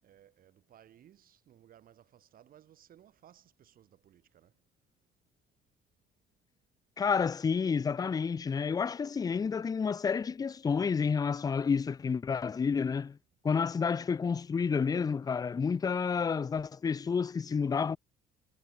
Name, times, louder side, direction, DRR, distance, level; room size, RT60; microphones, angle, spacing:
voice 1, 0.0-4.5, right 11 dB, 60° right, 6.5 m, -60 dB
voice 2, 7.0-13.2 13.4-18.0, left 5 dB, 20° left, 0.5 m, -30 dB
cardioid pair, 110°, 17 cm